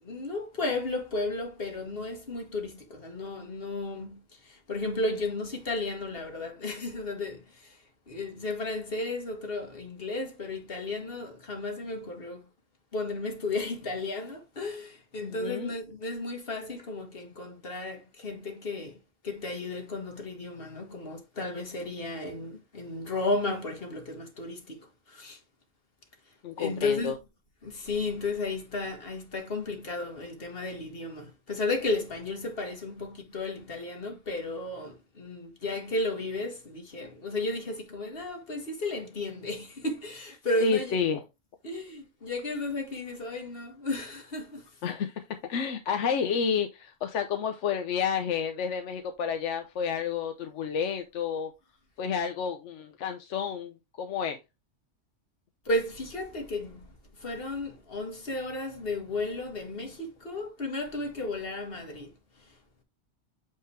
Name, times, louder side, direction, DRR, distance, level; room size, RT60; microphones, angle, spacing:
voice 1, 0.0-12.5 12.9-19.0 19.2-25.4 26.6-27.2 27.6-41.0 41.6-44.7 55.7-56.9 57.2-62.5, left 2 dB, 55° left, 1.7 m, -34 dB
voice 2, 15.2-15.7 26.4-27.2 40.6-41.2 44.8-45.2 45.5-51.5 52.0-54.4, left 7 dB, 80° left, 1.1 m, -30 dB
8.5 x 3.8 x 3.3 m
omnidirectional pair, 1.2 m